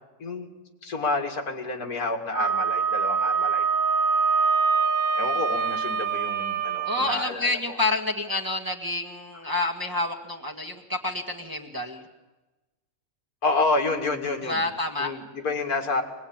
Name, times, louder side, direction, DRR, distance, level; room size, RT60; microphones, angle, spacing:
voice 1, 0.8-3.6 5.2-7.5 13.4-14.6 15.0-16.0, left 3 dB, 85° left, 3 dB, 2.7 m, -29 dB
Wind instrument woodwind instrument, 2.3-7.1, right 5 dB, 70° right, 1.5 m, -24 dB
voice 2, 6.8-12.0 14.4-15.1, left 2 dB, 15° right, 0 dB, 1.7 m, -28 dB
24.0 x 20.0 x 8.8 m, 1.1 s
omnidirectional pair, 1.6 m